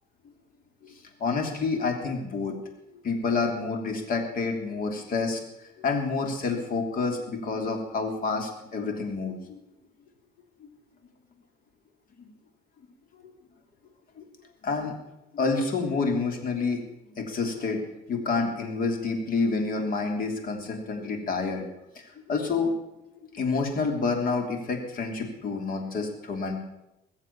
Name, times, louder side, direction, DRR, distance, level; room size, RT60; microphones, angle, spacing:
voice 1, 0.8-2.5 3.0-5.4 5.8-9.6 10.6-10.7 14.2-14.3 14.6-14.9 15.3-16.8 17.2-17.8 18.1-21.7 21.9-22.7 23.2-26.6, left 4 dB, 55° left, 4 dB, 3.2 m, -28 dB
21.0 x 7.3 x 7.2 m, 0.91 s
cardioid pair, 110°, 17 cm